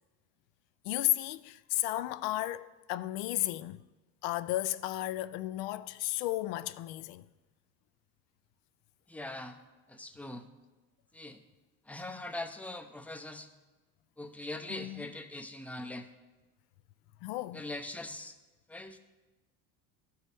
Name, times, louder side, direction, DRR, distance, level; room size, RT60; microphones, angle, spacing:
voice 1, 0.8-3.8 4.2-7.3 14.7-15.0 17.2-17.6, left 16 dB, 70° left, 0.5 m, -33 dB
voice 2, 9.1-9.6 9.9-10.5 11.1-11.4 11.9-13.5 14.2-16.1 17.5-18.4 18.7-19.0, left 2 dB, 5° left, 0.6 m, -41 dB
13.5 x 4.7 x 3.3 m
supercardioid pair, 85°, 48 cm